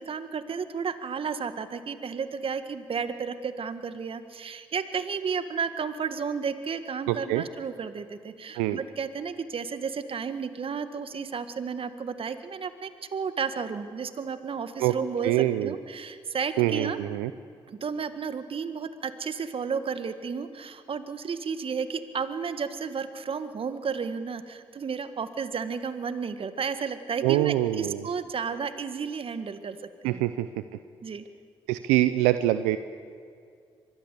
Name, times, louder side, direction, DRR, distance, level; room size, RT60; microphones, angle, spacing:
voice 1, 0.0-17.0 17.7-29.8 30.0-30.2 31.0-31.2, right 6 dB, 55° right, 11 dB, 1.8 m, -32 dB
voice 2, 7.1-7.4 8.5-8.8 14.8-14.9 15.2-15.7 16.6-17.3 27.2-28.1 30.0-30.5 31.7-32.8, right 15 dB, 90° right, 12 dB, 0.6 m, -24 dB
24.5 x 20.5 x 8.3 m, 2.3 s
hypercardioid pair, 45°, 11 cm